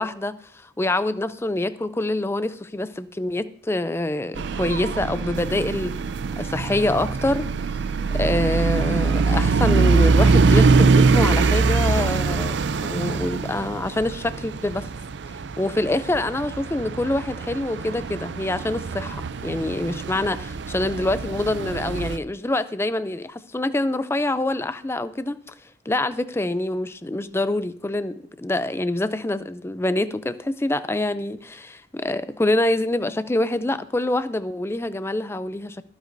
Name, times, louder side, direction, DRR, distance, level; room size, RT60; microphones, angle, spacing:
voice 1, 0.0-5.9 6.4-7.5 8.1-14.9 15.6-25.5 25.9-35.8, left 1 dB, 10° left, 0.4 m, -25 dB
sound 1, 4.3-22.2, right 4 dB, 60° right, 0.4 m, -23 dB
22.5 x 8.1 x 2.6 m
head